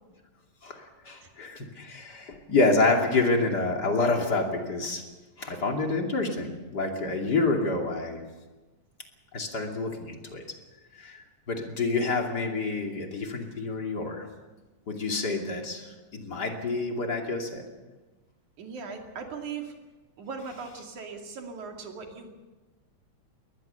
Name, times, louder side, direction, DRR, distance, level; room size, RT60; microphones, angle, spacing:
voice 1, 0.6-5.0 5.4-8.2 9.3-10.4 11.0-14.3 14.9-17.6, left 3 dB, 35° left, 2 dB, 3.0 m, -28 dB
voice 2, 18.6-19.7 20.2-22.3, right 5 dB, 85° right, 3 dB, 3.8 m, -39 dB
22.0 x 19.5 x 6.9 m, 1.2 s
omnidirectional pair, 3.3 m